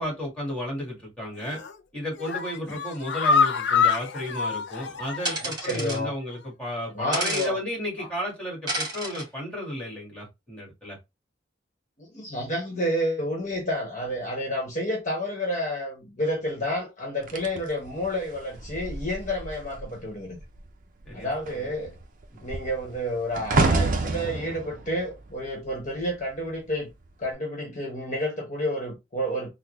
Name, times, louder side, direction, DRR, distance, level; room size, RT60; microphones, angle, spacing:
voice 1, 0.0-1.6 1.9-11.0 21.0-21.3 21.5-21.6 22.3-22.4, left 1 dB, 5° left, 1.5 m, -33 dB
sound 1, 1.4-1.8 2.1-5.5 5.9-6.0 6.3-6.4, left 5 dB, 75° left, 0.4 m, -26 dB
sound 2, 5.2-6.0 7.1-7.5 8.7-9.2, right 1 dB, 25° right, 1.6 m, -30 dB
voice 2, 5.4-6.1 6.9-7.6 8.0-8.1 12.0-20.4 21.1-21.9 22.4-26.9 27.2-29.5, equal, 45° left, 1.0 m, -30 dB
sound 3, 17.3-20.0 20.3-20.7 21.0-26.3 27.1-27.3, right 3 dB, 45° right, 0.5 m, -29 dB
3.7 x 2.1 x 3.0 m
head